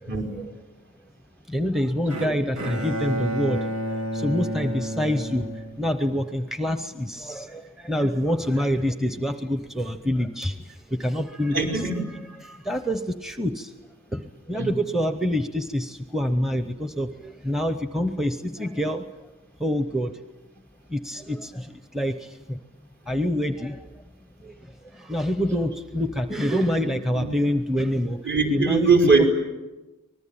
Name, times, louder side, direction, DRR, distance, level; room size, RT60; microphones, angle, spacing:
voice 1, 0.0-0.5 1.5-11.7 12.4-13.7 14.1-19.1 19.6-20.2 20.9-22.6 23.1-23.9 24.4-29.1, equal, ahead, 9 dB, 0.8 m, -27 dB
Bowed string instrument, 2.1-6.3, right 1 dB, 85° right, 1.9 m, -31 dB
voice 2, 11.5-12.0 14.6-14.7 26.8-27.3 28.2-29.3, right 4 dB, 55° right, 1 dB, 4.5 m, -21 dB
25.0 x 20.0 x 8.7 m, 1.1 s
head